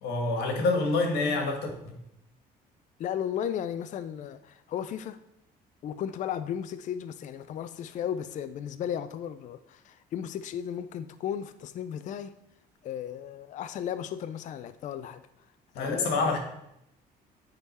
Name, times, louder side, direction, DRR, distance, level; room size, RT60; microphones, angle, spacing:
voice 1, 0.0-1.9 15.8-16.4, left 3 dB, 80° left, 2 dB, 1.6 m, -27 dB
voice 2, 3.0-5.2 5.8-12.3 12.8-15.2 15.8-16.4, left 9 dB, 50° left, 12 dB, 0.4 m, -35 dB
9.2 x 3.7 x 4.2 m, 0.80 s
cardioid pair, 110°, 17 cm